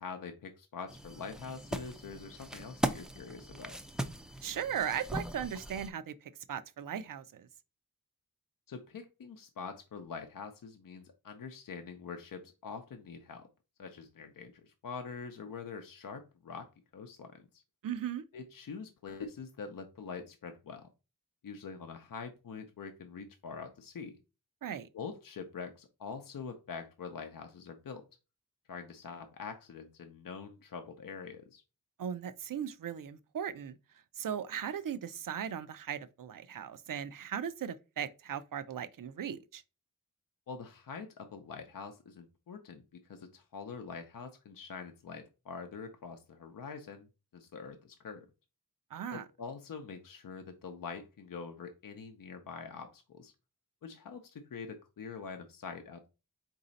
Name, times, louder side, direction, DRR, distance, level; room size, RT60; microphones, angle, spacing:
voice 1, 0.0-3.8 8.7-13.5 13.8-17.6 18.3-20.9 21.4-24.2 24.9-28.1 28.7-31.6 40.5-47.1 47.3-48.3 49.1-53.3 53.8-56.1, left 5 dB, 70° left, 0.6 m, -45 dB
sound 1, 0.9-5.9, right 1 dB, ahead, 0.4 m, -39 dB
voice 2, 4.4-7.5 17.8-18.2 24.6-24.9 32.0-33.8 34.2-39.6 48.9-49.3, right 8 dB, 70° right, 0.5 m, -38 dB
4.1 x 2.7 x 3.9 m
wide cardioid pair, 85°, 34 cm